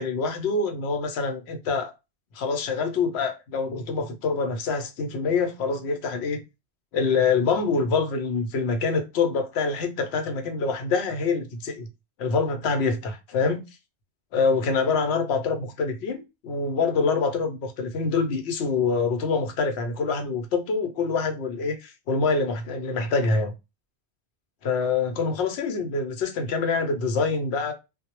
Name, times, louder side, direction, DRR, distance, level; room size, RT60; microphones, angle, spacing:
voice 1, 0.0-1.9 2.3-6.4 6.9-11.9 12.2-13.6 14.3-23.5 24.6-27.7, left 4 dB, 75° left, 0.8 m, -25 dB
2.1 x 2.0 x 2.8 m
omnidirectional pair, 1.1 m